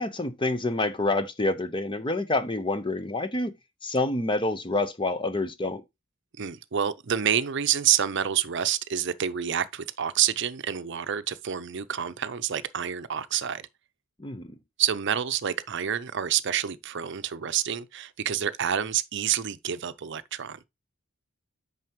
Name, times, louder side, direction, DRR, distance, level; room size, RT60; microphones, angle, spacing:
voice 1, 0.0-3.5 3.8-5.8 14.2-14.6, left 2 dB, 25° left, 0.8 m, -27 dB
voice 2, 6.4-13.7 14.8-20.6, right 9 dB, 60° right, 0.6 m, -28 dB
9.2 x 5.6 x 3.0 m
head